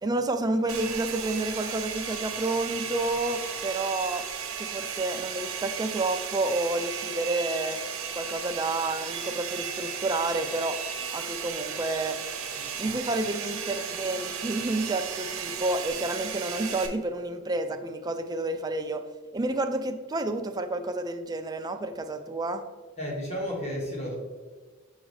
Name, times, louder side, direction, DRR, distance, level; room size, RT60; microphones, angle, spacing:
voice 1, 0.0-4.2 4.6-7.8 8.2-10.8 11.1-12.2 12.8-19.0 19.3-22.6, right 2 dB, 20° right, 6 dB, 0.4 m, -30 dB
Domestic sounds home sounds, 0.7-16.9, right 7 dB, 80° right, 0.9 m, -35 dB
voice 2, 23.0-24.2, equal, 35° left, -2 dB, 1.5 m, -32 dB
6.3 x 4.9 x 3.2 m, 1.4 s
head